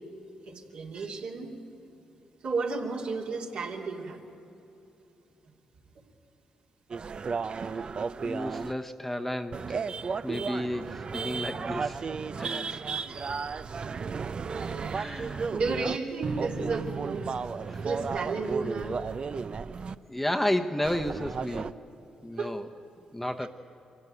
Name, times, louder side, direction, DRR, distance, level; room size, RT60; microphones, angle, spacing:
voice 1, 0.5-1.5 2.4-4.2 12.5-12.8 13.1-13.9 14.5-15.2 15.5-17.3 17.6-19.0 20.8-20.9 21.6-21.7 22.4-22.5, right 4 dB, 70° right, -2 dB, 3.0 m, -33 dB
sound 1, 6.9-8.7 9.5-16.0 16.2-20.0 20.8-21.7, right 5 dB, 45° right, 0.6 m, -34 dB
voice 2, 8.2-9.9 10.2-12.1 12.4-13.1 14.9-15.5 17.7-17.8 20.1-21.7 22.2-22.7 23.1-23.5, left 1 dB, 10° left, 5 dB, 1.0 m, -32 dB
24.0 x 15.5 x 9.3 m, 2.8 s
supercardioid pair, 60°, 2 cm